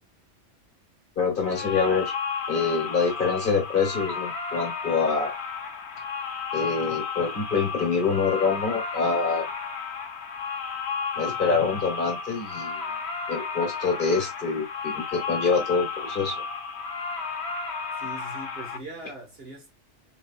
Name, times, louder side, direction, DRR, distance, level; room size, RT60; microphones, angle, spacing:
voice 1, 1.2-2.1 2.5-5.3 6.5-9.5 11.2-12.8 13.3-16.3, left 5 dB, 45° left, 1.5 m, -25 dB
sound 1, 1.4-18.8, left 5 dB, 65° left, 0.9 m, -33 dB
voice 2, 18.0-19.7, right 2 dB, 55° right, 1.7 m, -41 dB
4.4 x 2.7 x 2.3 m
omnidirectional pair, 1.2 m